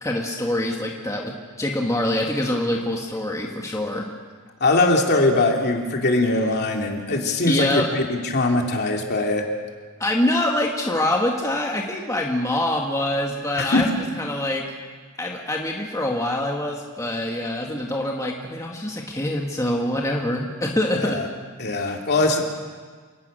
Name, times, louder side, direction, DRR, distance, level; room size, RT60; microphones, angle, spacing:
voice 1, 0.0-4.1 7.5-7.9 10.0-13.9 14.2-14.7 15.2-21.2, left 1 dB, 15° left, 0 dB, 1.7 m, -25 dB
voice 2, 4.6-9.4 13.5-13.8 20.9-21.2 21.6-22.4, left 2 dB, 50° left, 1 dB, 2.7 m, -21 dB
28.5 x 12.0 x 8.9 m, 1.5 s
head